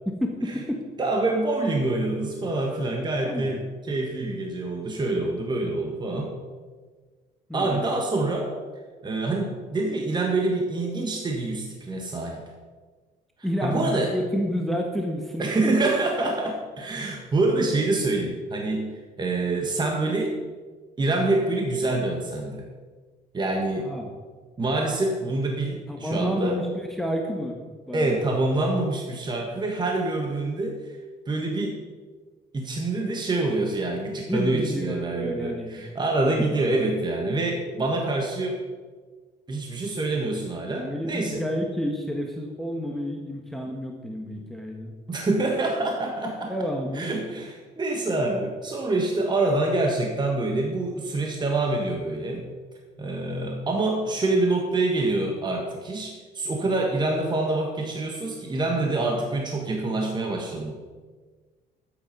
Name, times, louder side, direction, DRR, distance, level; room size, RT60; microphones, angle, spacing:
voice 1, 0.0-0.8 3.2-3.6 7.5-7.9 13.4-15.7 23.8-24.1 25.9-28.3 34.3-35.9 40.7-45.0 46.5-47.0, equal, ahead, 1 dB, 1.4 m, -30 dB
voice 2, 1.0-6.3 7.5-8.5 9.0-12.4 13.6-14.1 15.4-18.9 19.2-20.4 21.0-22.6 23.3-23.9 24.6-26.6 27.9-31.0 31.3-31.8 32.5-38.6 39.5-41.4 45.1-46.5 46.9-52.4 53.0-60.7, right 2 dB, 25° right, 1 dB, 1.6 m, -26 dB
12.5 x 8.4 x 5.5 m, 1.4 s
cardioid pair, 110°, 17 cm